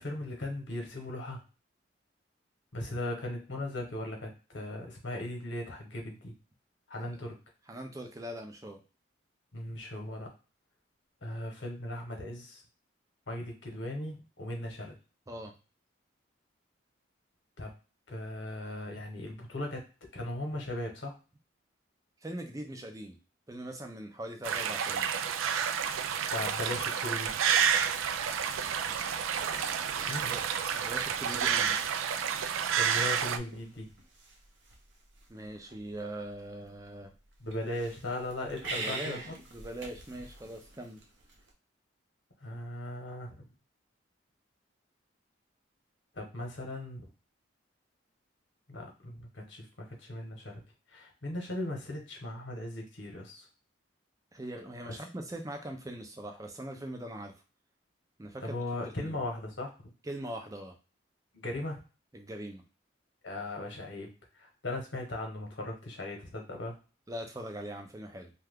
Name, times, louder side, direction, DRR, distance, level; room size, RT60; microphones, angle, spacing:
voice 1, 0.0-1.4 2.7-6.3 6.9-7.4 9.5-10.3 11.2-12.6 13.3-15.0 17.6-17.7 18.1-19.8 20.1-21.2 26.3-27.4 30.1-30.4 32.8-34.0 37.4-39.3 42.4-43.5 46.1-47.1 48.7-50.6 50.9-53.5 54.9-55.0 58.4-59.7 61.3-61.8 63.2-66.8, left 1 dB, 65° left, 2 dB, 1.0 m, -38 dB
voice 2, 7.7-8.8 15.3-15.5 22.2-23.2 23.5-25.1 30.0-30.4 30.7-31.8 35.3-37.1 38.8-39.2 39.5-41.0 54.3-57.3 58.2-58.6 59.0-59.2 60.0-60.8 62.1-62.6 67.1-68.3, right 1 dB, 15° right, 4 dB, 0.4 m, -41 dB
sound 1, 24.4-33.4, right 7 dB, 85° right, 0.3 m, -30 dB
sound 2, 24.8-41.5, right 3 dB, 65° right, 0.7 m, -48 dB
2.8 x 2.3 x 3.5 m, 0.34 s
head